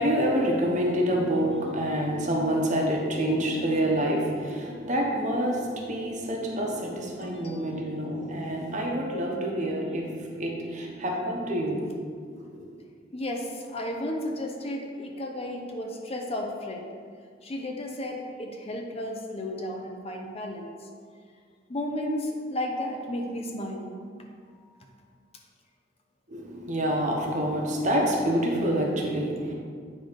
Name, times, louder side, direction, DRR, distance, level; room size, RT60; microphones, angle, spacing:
voice 1, 0.0-11.8 12.4-12.7 26.3-29.5, equal, 40° right, -1 dB, 1.1 m, -27 dB
voice 2, 7.2-7.7 13.1-16.9 17.4-20.9 21.7-23.9, left 1 dB, 30° left, 1 dB, 0.7 m, -33 dB
8.4 x 3.8 x 5.1 m, 2.1 s
head